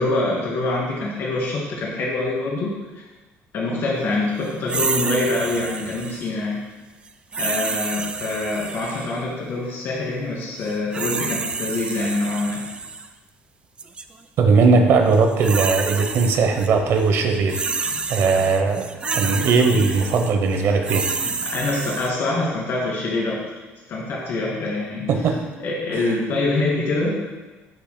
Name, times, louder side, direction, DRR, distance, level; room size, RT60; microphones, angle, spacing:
voice 1, 0.0-3.0 3.5-6.6 7.4-12.7 17.9-18.0 21.0-23.4 23.9-25.1 25.6-27.2, left 2 dB, 55° left, -3 dB, 2.4 m, -25 dB
sound 1, 4.7-6.3 7.3-9.2 10.6-13.1 13.8-14.0 15.1-16.7 17.0-22.1, right 4 dB, 20° right, 0.3 m, -29 dB
voice 2, 14.4-21.1 25.1-25.4 25.9-26.0, right 4 dB, 60° right, 5 dB, 0.8 m, -19 dB
11.0 x 5.7 x 2.2 m, 1.2 s
cardioid pair, 140°, 5 cm